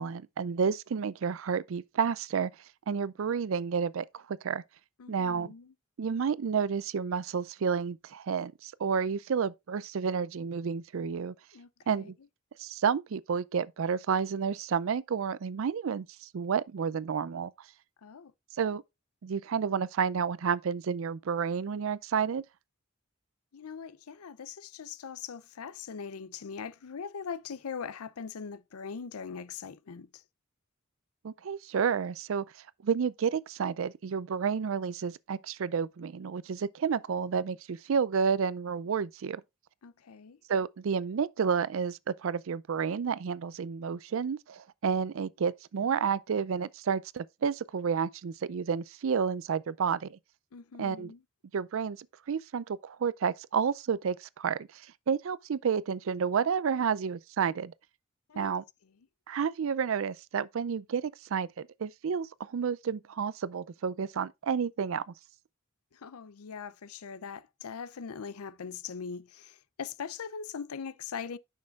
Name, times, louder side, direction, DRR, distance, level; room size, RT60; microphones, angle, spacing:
voice 1, 0.0-2.5 2.9-4.6 5.1-5.5 6.0-11.3 11.9-12.1 12.6-17.5 18.6-18.8 19.2-22.4 31.2-32.4 32.8-39.4 40.5-50.2 50.8-51.1 51.5-57.7 58.4-58.6 59.3-65.0, right 6 dB, 65° right, 0.4 m, -30 dB
voice 2, 5.0-5.7 11.5-12.1 18.0-18.3 23.5-30.2 39.8-40.4 50.5-51.2 58.3-58.5 65.9-71.4, left 6 dB, 90° left, 0.5 m, -41 dB
9.6 x 6.4 x 2.4 m
head